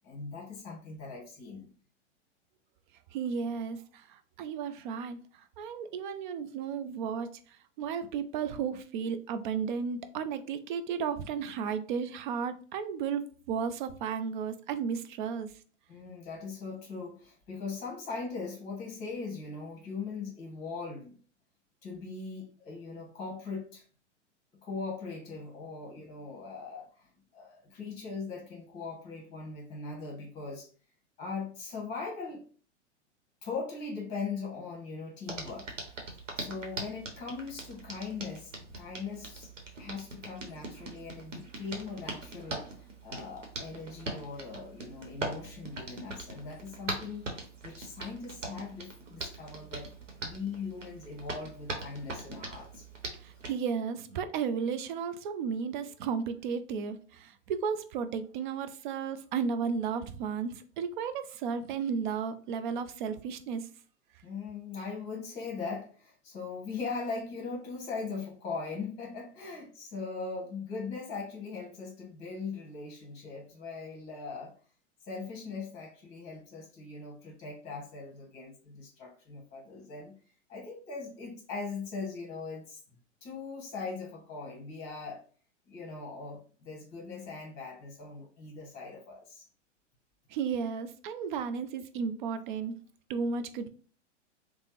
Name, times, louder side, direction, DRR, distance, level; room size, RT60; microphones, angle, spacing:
voice 1, 0.0-1.7 15.9-21.2 21.8-23.8 24.6-30.7 31.2-32.4 33.4-36.1 36.4-39.5 39.8-47.3 47.6-49.9 50.2-52.9 64.2-74.5 75.0-80.2 80.5-82.8 83.2-85.2 85.7-89.4, left 4 dB, 25° left, 1.0 m, -40 dB
voice 2, 3.1-5.2 5.6-7.3 7.8-15.5 53.2-63.7 90.3-92.7 93.1-93.7, right 6 dB, 45° right, 0.4 m, -34 dB
Hands, 35.3-53.5, right 2 dB, 85° right, 0.9 m, -42 dB
3.2 x 2.1 x 2.9 m
figure-of-eight pair, 100°, 36 cm